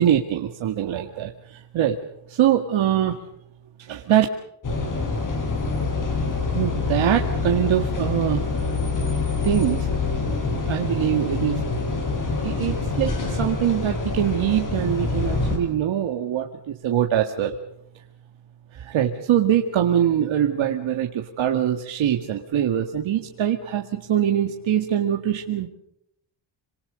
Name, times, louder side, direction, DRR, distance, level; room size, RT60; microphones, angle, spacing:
voice 1, 0.0-2.0 2.3-3.2 3.8-4.3 6.5-8.4 9.4-9.9 10.7-11.6 12.4-17.6 18.7-25.7, right 10 dB, 85° right, 3 dB, 2.1 m, -23 dB
sound 1, 4.6-15.6, left 3 dB, 40° left, 6.2 m, -26 dB
27.5 x 26.0 x 5.2 m, 0.78 s
wide cardioid pair, 145°, 46 cm